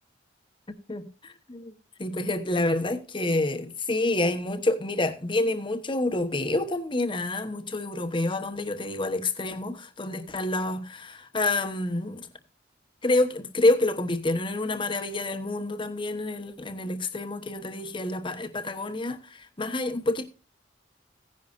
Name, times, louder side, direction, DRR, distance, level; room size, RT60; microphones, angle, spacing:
voice 1, 0.9-1.7 2.0-12.3 13.0-20.3, left 2 dB, 25° left, 1.1 m, -28 dB
16.0 x 10.5 x 2.6 m
head